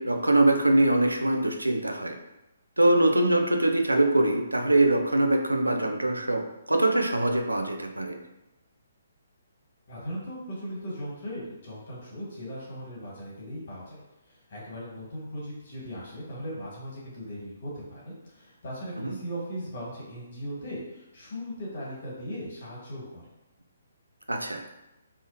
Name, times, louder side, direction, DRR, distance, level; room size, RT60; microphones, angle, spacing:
voice 1, 0.0-2.2 2.8-8.2 19.0-19.1 24.3-24.6, right 1 dB, 85° right, 4 dB, 0.3 m, -23 dB
voice 2, 9.9-23.2, equal, 50° left, -5 dB, 1.2 m, -38 dB
2.4 x 2.1 x 2.6 m, 0.95 s
figure-of-eight pair, 135°, 0 cm